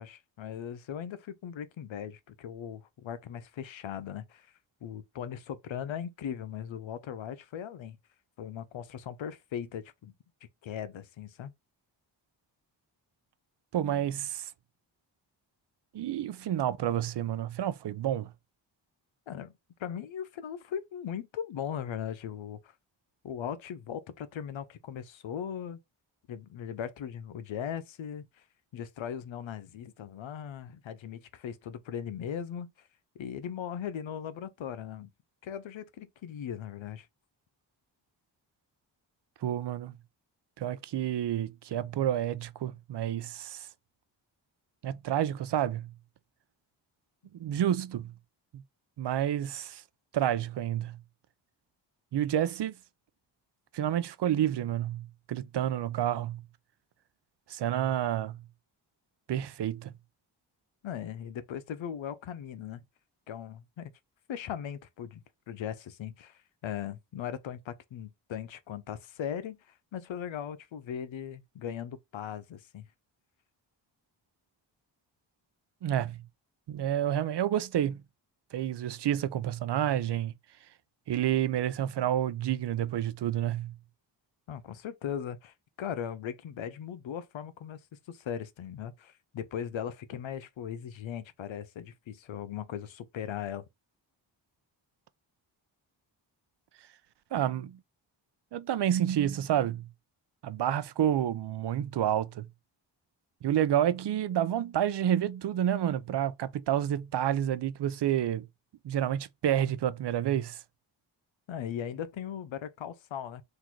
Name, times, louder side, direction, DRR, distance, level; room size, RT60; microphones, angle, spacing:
voice 1, 0.0-4.5 4.8-8.0 8.4-10.1 10.6-11.5 19.3-19.5 19.8-22.7 23.2-25.8 26.3-28.4 28.7-32.7 33.2-35.1 35.4-37.1 60.8-62.8 63.3-63.9 64.3-72.9 84.5-87.8 88.1-93.7 111.5-113.4, left 9 dB, 75° left, 0.8 m, -39 dB
voice 2, 13.7-14.5 15.9-18.3 39.4-39.9 40.6-43.7 44.8-45.9 47.4-48.1 49.0-49.8 50.1-51.0 52.1-52.7 53.7-56.4 57.5-58.4 59.3-59.9 75.8-76.2 76.7-78.0 78.5-80.3 81.1-83.7 97.3-97.8 98.5-99.9 100.4-102.5 103.4-108.5 108.8-110.6, right 11 dB, 60° right, 0.6 m, -29 dB
3.8 x 2.7 x 4.5 m
cardioid pair, 50°, 47 cm